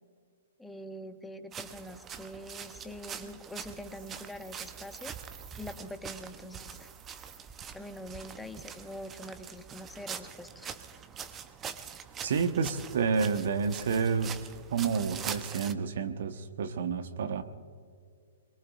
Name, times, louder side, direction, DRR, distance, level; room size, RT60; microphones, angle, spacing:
voice 1, 0.6-5.1 5.6-6.9 7.7-10.8, left 1 dB, 5° left, 6 dB, 1.2 m, -44 dB
sound 1, 1.5-15.7, right 7 dB, 20° right, 0.8 m, -44 dB
sound 2, 3.8-5.8 6.5-7.4, right 8 dB, 35° right, 2.5 m, -55 dB
voice 2, 12.2-14.4 14.7-17.4, right 5 dB, 55° right, 9 dB, 1.2 m, -29 dB
24.0 x 22.5 x 2.5 m, 2.1 s
figure-of-eight pair, 115°, 0 cm